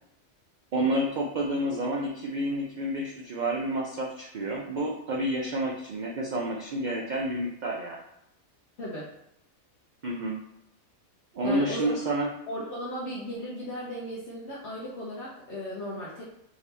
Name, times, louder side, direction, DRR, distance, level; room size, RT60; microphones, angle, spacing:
voice 1, 0.7-8.0 10.0-10.4 11.3-12.3, right 1 dB, 70° right, -1 dB, 0.4 m, -29 dB
voice 2, 8.8-9.1 11.4-11.9 12.5-16.2, equal, 55° left, -7 dB, 1.0 m, -36 dB
4.9 x 2.7 x 3.3 m, 0.80 s
omnidirectional pair, 1.4 m